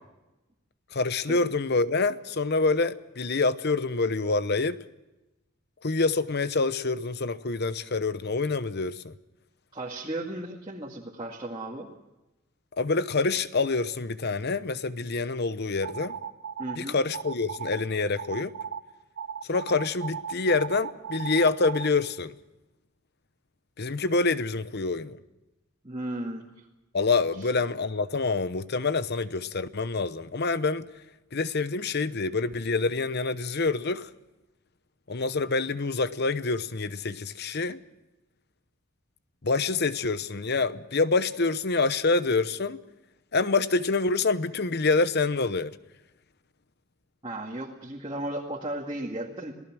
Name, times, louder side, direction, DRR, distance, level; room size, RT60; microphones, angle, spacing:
voice 1, 0.9-4.8 5.8-9.1 12.8-16.2 16.8-18.5 19.5-22.3 23.8-25.2 26.9-30.9 31.3-34.1 35.1-37.8 39.4-42.8 43.3-45.7, left 3 dB, 50° left, 0.9 m, -26 dB
voice 2, 9.7-11.9 16.6-17.0 25.8-26.4 47.2-49.5, right 1 dB, 25° right, 2.1 m, -35 dB
sound 1, 15.8-16.8 17.1-17.8 18.2-18.8 19.2-21.9, right 7 dB, 60° right, 1.4 m, -36 dB
27.5 x 18.5 x 6.2 m
head